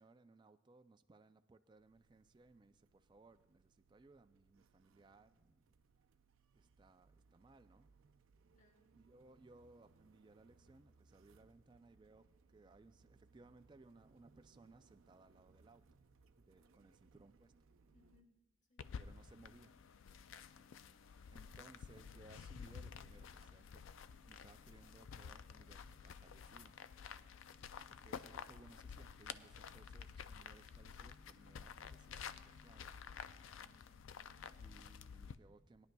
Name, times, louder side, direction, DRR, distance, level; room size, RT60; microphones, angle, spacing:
voice 1, 0.0-5.7 6.5-7.9 8.9-15.9 16.4-17.5 19.0-20.6 21.3-23.9 24.2-26.8 27.9-33.3 34.6-35.9, right 3 dB, 20° right, 9 dB, 0.3 m, -64 dB
sound 1, 1.7-18.2, right 4 dB, 85° right, 0.5 m, -70 dB
voice 2, 8.5-8.9 17.9-18.4 18.7-18.9 33.5-34.8, left 1 dB, 35° left, 2 dB, 1.6 m, -72 dB
sound 2, 18.8-35.4, left 6 dB, 75° left, 0.4 m, -52 dB
20.0 x 10.5 x 2.3 m, 1.1 s
head